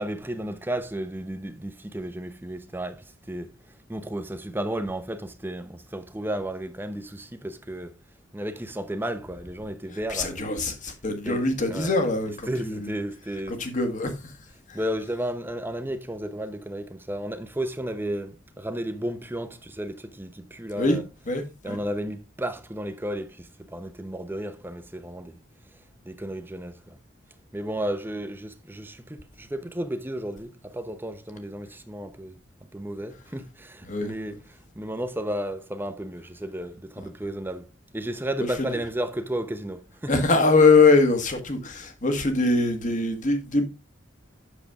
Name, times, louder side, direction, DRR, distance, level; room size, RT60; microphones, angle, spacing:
voice 1, 0.0-3.5 3.9-7.9 8.3-10.4 11.3-11.9 12.5-13.6 14.7-21.0 21.6-25.4 26.1-27.0 27.5-32.4 32.7-40.1, right 1 dB, 10° right, 0.8 m, -33 dB
voice 2, 10.1-12.9 13.5-14.1 14.7-14.8 20.8-21.0 21.3-21.8 33.9-34.1 38.4-38.5 40.1-43.6, left 3 dB, 40° left, 1.6 m, -22 dB
8.4 x 6.7 x 3.6 m
head